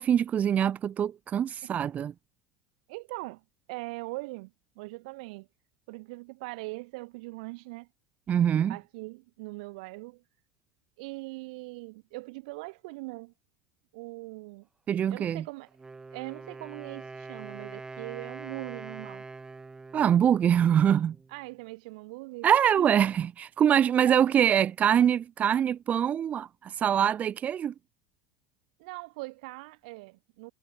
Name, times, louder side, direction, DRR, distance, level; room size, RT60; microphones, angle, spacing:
voice 1, 0.0-2.1 8.3-8.8 14.9-15.4 19.9-21.2 22.4-27.7, right 9 dB, 35° right, 1.3 m, -24 dB
voice 2, 2.9-5.5 5.9-7.9 8.7-10.2 11.0-13.3 13.9-14.7 15.1-15.7 16.1-19.2 21.3-22.5 22.8-22.9 24.0-24.2 28.8-30.5, right 25 dB, 70° right, 4.3 m, -41 dB
Wind instrument woodwind instrument, 15.7-21.4, right 3 dB, 15° right, 3.4 m, -44 dB
hypercardioid pair, 105°, 5 cm